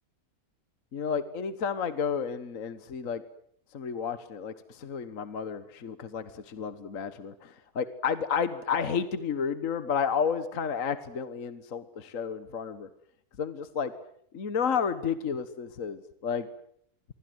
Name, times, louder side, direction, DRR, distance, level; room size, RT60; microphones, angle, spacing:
voice 1, 0.9-3.2 3.7-12.9 13.4-13.9 14.3-16.5, left 6 dB, 60° left, 12 dB, 1.6 m, -31 dB
26.5 x 23.5 x 8.0 m, 0.69 s
omnidirectional pair, 1.6 m